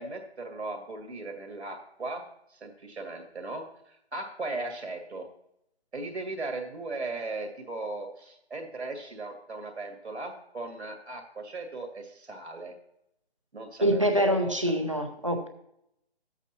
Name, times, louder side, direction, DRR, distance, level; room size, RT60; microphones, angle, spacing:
voice 1, 0.0-2.2 2.5-5.3 5.9-12.7 13.5-14.1 14.4-14.8, right 2 dB, 90° right, 3 dB, 2.2 m, -37 dB
voice 2, 13.8-15.5, equal, 30° right, 5 dB, 0.6 m, -25 dB
11.0 x 8.1 x 2.9 m, 0.77 s
hypercardioid pair, 180°, 32 cm